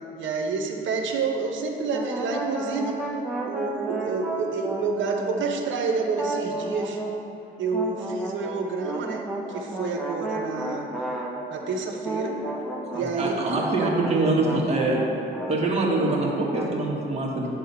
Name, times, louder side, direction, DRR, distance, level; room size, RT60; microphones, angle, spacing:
voice 1, 0.2-3.0 3.4-7.0 7.6-10.9 11.5-12.4 12.9-13.4, right 4 dB, 75° right, 3 dB, 1.0 m, -28 dB
sound 1, 1.9-5.7 6.1-7.2 7.7-11.6 12.0-15.6 15.9-16.9, right 1 dB, ahead, 1.2 m, -33 dB
voice 2, 13.2-15.0 15.5-17.6, right 2 dB, 30° right, -3 dB, 1.8 m, -24 dB
9.5 x 3.7 x 6.9 m, 2.7 s
cardioid pair, 90°, 20 cm